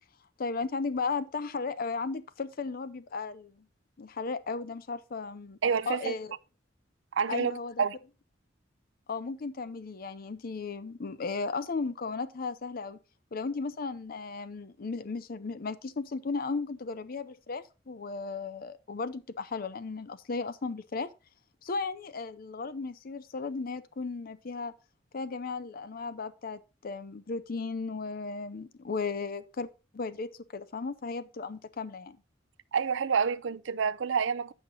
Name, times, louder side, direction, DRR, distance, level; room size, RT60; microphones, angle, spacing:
voice 1, 0.4-3.6 4.0-5.6 5.9-6.3 7.3-7.8 9.1-13.0 13.3-21.1 21.6-24.7 25.1-32.2, left 4 dB, 50° left, 0.6 m, -35 dB
voice 2, 5.6-6.1 7.1-7.9 32.7-34.5, right 6 dB, 80° right, 0.5 m, -28 dB
8.6 x 5.8 x 4.0 m
head